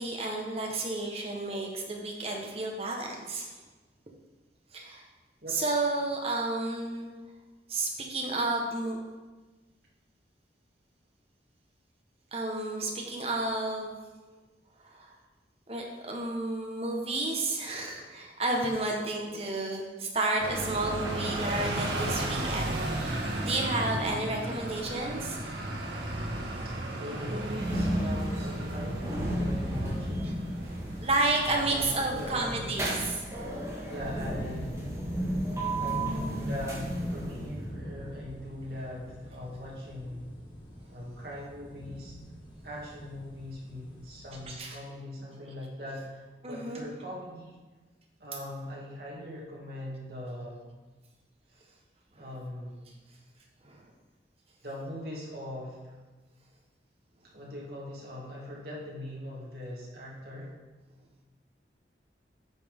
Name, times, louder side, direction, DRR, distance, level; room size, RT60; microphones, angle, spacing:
voice 1, 0.0-3.5 4.7-5.0 5.5-7.1 7.7-9.0 12.3-14.0 14.8-15.1 15.7-25.4 31.0-33.2 44.5-44.8 46.4-46.8 53.6-53.8, right 2 dB, 35° right, 0 dB, 1.1 m, -31 dB
sound 1, 20.4-33.0, right 1 dB, 90° right, 1.4 m, -35 dB
voice 2, 26.9-30.5 31.7-32.7 33.9-34.8 35.8-40.3 40.9-42.1 42.6-47.6 48.2-50.6 52.2-52.8 54.6-55.8 57.3-60.5, left 1 dB, 60° right, -5 dB, 2.3 m, -41 dB
sound 2, 27.5-37.7, right 1 dB, 15° right, 1.6 m, -34 dB
sound 3, 34.0-44.6, equal, 25° left, 1.0 m, -43 dB
9.3 x 5.7 x 3.6 m, 1.2 s
head